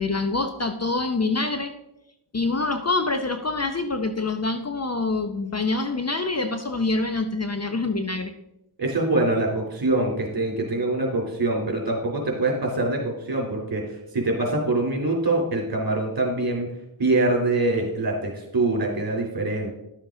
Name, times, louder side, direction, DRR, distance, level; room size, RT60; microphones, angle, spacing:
voice 1, 0.0-1.7 2.3-8.3, left 3 dB, 30° left, 8 dB, 0.8 m, -26 dB
voice 2, 8.8-16.7 17.0-19.7, right 2 dB, 45° right, 0 dB, 3.3 m, -24 dB
11.5 x 7.2 x 3.8 m, 0.86 s
cardioid pair, 65°, 49 cm